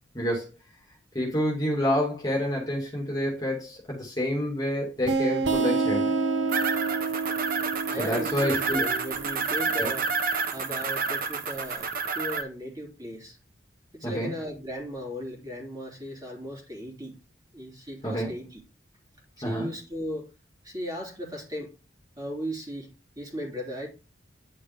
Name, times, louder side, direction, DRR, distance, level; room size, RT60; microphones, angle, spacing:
voice 1, 0.1-0.5 1.1-6.1 8.0-8.8 9.8-9.9 14.0-14.3 18.0-18.3 19.4-19.7, equal, 20° left, 2.5 m, -28 dB
sound 1, 5.1-10.4, right 4 dB, 85° right, 1.2 m, -29 dB
sound 2, 6.5-12.4, right 4 dB, 50° right, 1.1 m, -29 dB
voice 2, 7.9-10.1 10.5-13.4 13.9-17.1 17.5-18.6 19.4-20.3 20.6-21.7 22.2-22.9 23.2-23.9, equal, 20° right, 3.2 m, -36 dB
9.9 x 5.3 x 3.6 m
head